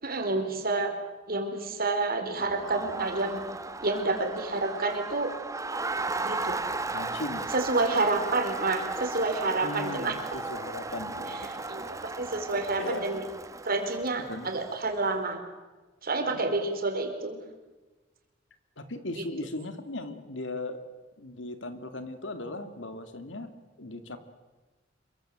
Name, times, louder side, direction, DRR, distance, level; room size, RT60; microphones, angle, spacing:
voice 1, 0.0-0.9 1.3-3.4 3.8-5.3 6.2-6.6 7.5-10.2 11.3-13.2 13.6-15.4 16.0-17.4, right 3 dB, 50° right, 5 dB, 4.5 m, -29 dB
Crowd, 2.4-14.9, right 3 dB, 15° right, 1.1 m, -36 dB
voice 2, 6.9-7.5 9.6-11.6 12.8-13.0 14.3-14.5 16.3-16.6 18.8-20.8 21.2-23.5 23.8-24.2, left 2 dB, 70° left, 9 dB, 2.6 m, -38 dB
27.0 x 23.5 x 7.8 m, 1.2 s
head